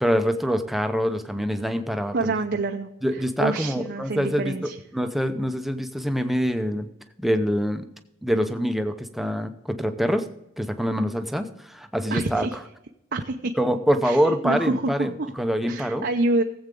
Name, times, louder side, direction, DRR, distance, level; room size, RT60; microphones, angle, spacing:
voice 1, 0.0-2.3 3.0-6.9 7.2-7.8 8.2-10.3 10.6-12.5 13.6-16.1, equal, ahead, 7 dB, 0.7 m, -25 dB
voice 2, 2.1-2.9 3.4-4.8 12.1-12.6 13.1-13.5 14.0-15.3 15.7-16.4, right 2 dB, 55° right, 3 dB, 0.7 m, -27 dB
18.0 x 8.0 x 3.8 m, 0.84 s
head